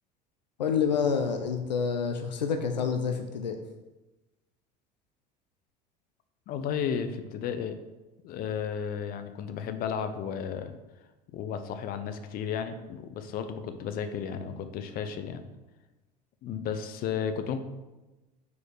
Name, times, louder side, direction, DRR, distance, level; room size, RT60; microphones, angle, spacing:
voice 1, 0.6-3.6, left 6 dB, 85° left, 6 dB, 0.5 m, -28 dB
voice 2, 6.5-7.8 8.2-10.7 11.3-15.4 16.4-17.6, left 7 dB, 45° left, 9 dB, 0.6 m, -33 dB
4.7 x 4.2 x 4.8 m, 1.1 s
figure-of-eight pair, 70°, 21 cm